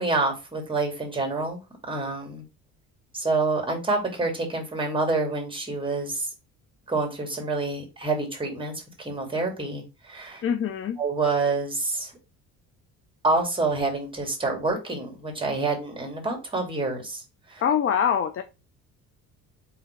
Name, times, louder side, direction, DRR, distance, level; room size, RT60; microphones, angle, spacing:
voice 1, 0.0-1.6 1.9-2.4 3.1-6.3 6.9-10.4 11.0-12.1 13.2-17.2 17.5-17.6, right 3 dB, 10° right, 1 dB, 2.4 m, -27 dB
voice 2, 10.4-11.0 17.6-18.4, left 8 dB, 30° left, 8 dB, 0.5 m, -24 dB
3.6 x 3.2 x 4.4 m, 0.28 s
hypercardioid pair, 55°, 43 cm